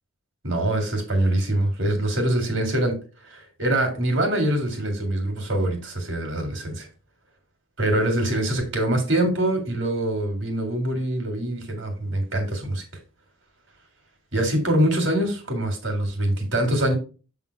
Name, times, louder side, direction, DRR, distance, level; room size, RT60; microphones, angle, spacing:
voice 1, 0.4-2.9 3.2-6.9 7.8-12.8 14.3-16.9, right 1 dB, 60° right, 4 dB, 2.3 m, -24 dB
7.7 x 3.8 x 4.7 m, 0.34 s
head